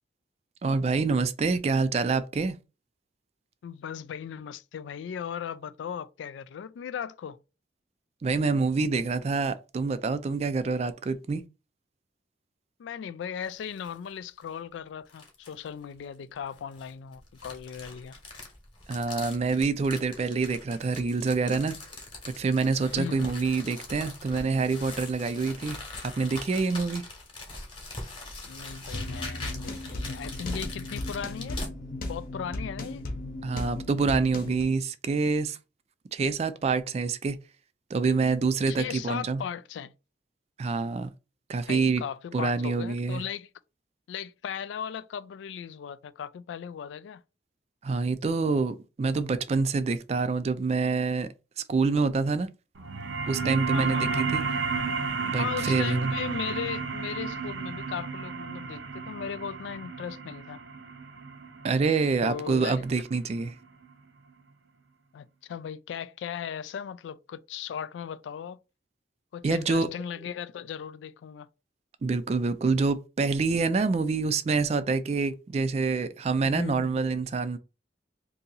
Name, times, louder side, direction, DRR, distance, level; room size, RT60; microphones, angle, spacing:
voice 1, 0.6-2.6 8.2-11.4 18.9-21.8 22.3-27.0 33.4-35.6 36.1-37.4 37.9-39.4 40.6-41.1 41.5-42.0 42.3-43.2 47.8-51.3 51.6-52.5 53.3-54.4 55.2-56.1 61.6-63.5 69.4-69.9 72.0-77.6, right 4 dB, 35° right, 0.3 m, -26 dB
voice 2, 3.6-7.4 12.8-18.2 22.9-23.3 28.4-31.6 32.0-33.0 38.7-39.9 41.6-43.5 44.1-47.2 53.7-54.3 55.4-60.6 62.2-62.9 65.1-68.6 69.3-71.5 76.4-77.1, left 8 dB, 90° left, 0.3 m, -37 dB
sound 1, 13.4-14.0 14.4-14.5 15.1-15.7 16.5-31.7, left 2 dB, 25° left, 1.0 m, -42 dB
sound 2, 28.9-34.6, left 2 dB, 50° left, 0.8 m, -36 dB
sound 3, 52.8-63.9, right 5 dB, 85° right, 0.6 m, -33 dB
2.7 x 2.7 x 3.8 m
head